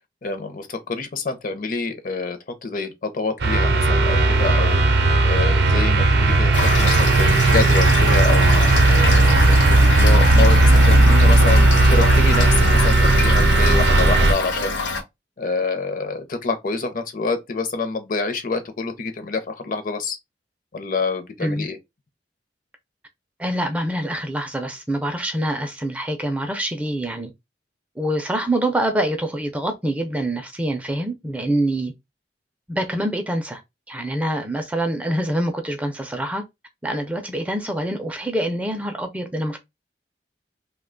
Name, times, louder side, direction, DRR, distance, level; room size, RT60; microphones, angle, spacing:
voice 1, 0.2-4.8 5.2-14.8 15.4-20.2 20.7-21.8, left 3 dB, 50° left, 0.6 m, -27 dB
sound 1, 3.4-14.3, right 2 dB, 70° right, 0.5 m, -15 dB
Toilet flush / Fill (with liquid), 6.5-15.0, left 3 dB, 85° left, 0.7 m, -26 dB
voice 2, 23.4-27.3 28.0-31.9 32.7-33.6 33.9-36.4 36.8-39.6, right 1 dB, 10° right, 0.4 m, -25 dB
2.8 x 2.2 x 3.7 m
head